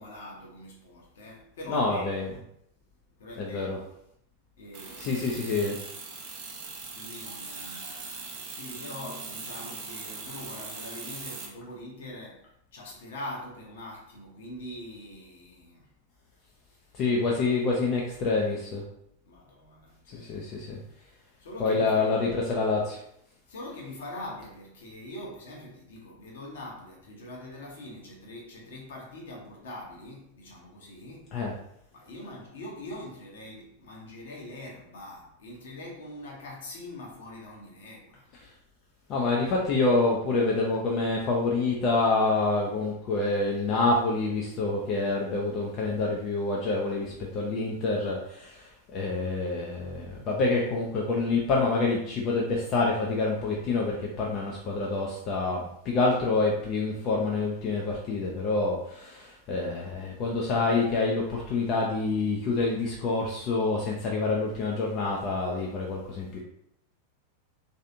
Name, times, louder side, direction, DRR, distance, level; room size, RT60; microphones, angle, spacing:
voice 1, 0.0-2.1 3.2-3.8 4.6-5.2 6.9-15.9 19.3-21.0 21.4-22.1 23.5-31.3 31.9-38.3, left 1 dB, 60° left, 0.9 m, -43 dB
voice 2, 1.7-2.3 3.4-3.8 5.0-5.8 16.9-18.8 20.1-20.8 21.6-23.0 31.3-31.6 39.1-66.4, left 3 dB, 35° left, 0.5 m, -27 dB
sound 1, 4.7-11.5, right 4 dB, 45° right, 0.7 m, -40 dB
3.2 x 2.6 x 2.6 m
figure-of-eight pair, 90°, 0 cm